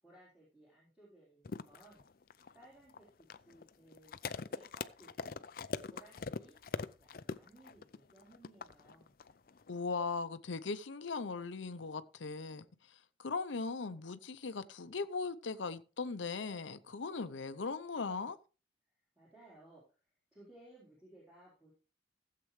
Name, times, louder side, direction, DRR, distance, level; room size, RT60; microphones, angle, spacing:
voice 1, 0.0-2.1 2.5-3.1 3.4-5.4 5.9-9.1 19.1-19.8 20.3-21.7, right 1 dB, 5° right, 4.0 m, -60 dB
sound 1, 1.5-9.8, left 4 dB, 50° left, 0.4 m, -42 dB
voice 2, 9.7-18.4, left 4 dB, 90° left, 0.7 m, -39 dB
15.5 x 7.6 x 3.2 m
head